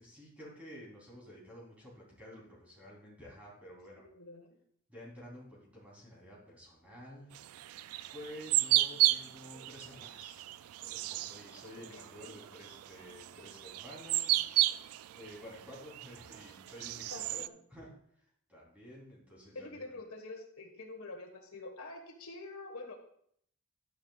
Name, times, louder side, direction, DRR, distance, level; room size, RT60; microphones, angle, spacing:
voice 1, 0.0-4.1 4.9-7.3 8.1-10.5 10.8-17.9 18.2-19.9, equal, 5° right, -5 dB, 3.5 m, -51 dB
voice 2, 3.9-4.5 11.9-12.4 17.1-17.5 19.5-22.9, left 2 dB, 85° left, 2 dB, 1.5 m, -46 dB
sound 1, 7.3-17.5, right 16 dB, 85° right, 0.3 m, -33 dB
11.5 x 9.7 x 2.4 m, 0.66 s
head